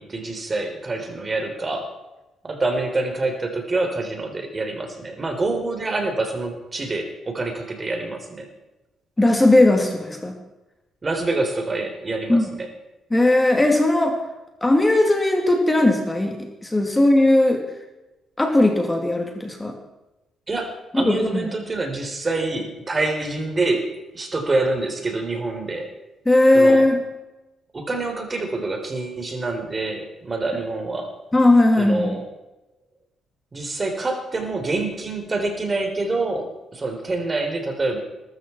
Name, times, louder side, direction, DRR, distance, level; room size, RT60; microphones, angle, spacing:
voice 1, 0.0-1.9 2.4-8.5 11.0-12.7 20.5-23.8 24.1-25.9 26.5-26.9 27.7-31.1 31.8-32.3 33.5-38.0, right 2 dB, 30° right, 5 dB, 3.8 m, -26 dB
voice 2, 9.2-10.3 12.3-12.5 13.1-14.2 14.6-17.6 18.4-19.7 20.9-21.5 26.3-27.0 31.3-32.2, left 1 dB, 15° left, 3 dB, 2.7 m, -18 dB
20.5 x 13.5 x 4.6 m, 1.0 s
cardioid pair, 90°, 0 cm